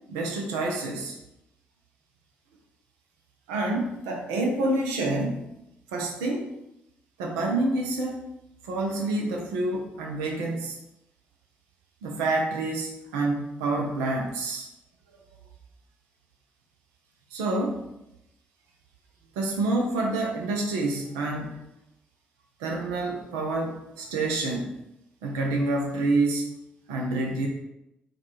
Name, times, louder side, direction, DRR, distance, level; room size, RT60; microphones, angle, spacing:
voice 1, 0.1-1.1 3.5-5.5 5.9-6.5 7.2-8.2 8.7-10.8 12.0-14.7 17.3-17.8 19.4-21.5 22.6-24.7 25.2-26.5 26.9-27.5, right 2 dB, 75° right, 1 dB, 0.5 m, -27 dB
4.5 x 2.3 x 3.0 m, 0.86 s
figure-of-eight pair, 40°, 5 cm